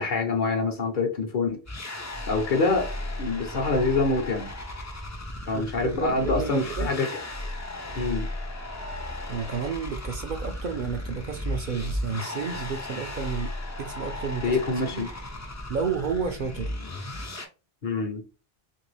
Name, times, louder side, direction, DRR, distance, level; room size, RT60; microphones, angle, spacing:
voice 1, 0.0-1.6 2.3-2.9 3.2-4.5 5.5-7.1 7.9-8.3 14.4-15.1 17.8-18.2, left 3 dB, 55° left, 0.9 m, -26 dB
sound 1, 1.7-17.5, left 1 dB, 25° left, 0.4 m, -35 dB
voice 2, 5.5-6.9 9.3-13.5 13.8-14.6 14.8-15.1 15.7-16.7, right 6 dB, 60° right, 0.6 m, -31 dB
2.9 x 2.6 x 3.2 m
omnidirectional pair, 1.0 m